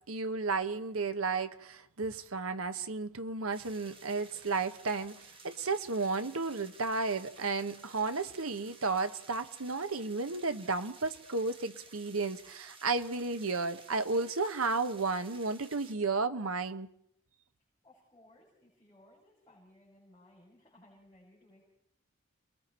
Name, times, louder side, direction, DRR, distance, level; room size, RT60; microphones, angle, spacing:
voice 1, 0.1-16.9, right 3 dB, 85° right, 1.2 m, -33 dB
sound 1, 3.5-15.9, right 3 dB, 25° right, 1.8 m, -55 dB
voice 2, 17.8-21.6, left 1 dB, 15° left, 6.7 m, -61 dB
29.0 x 21.5 x 4.4 m
head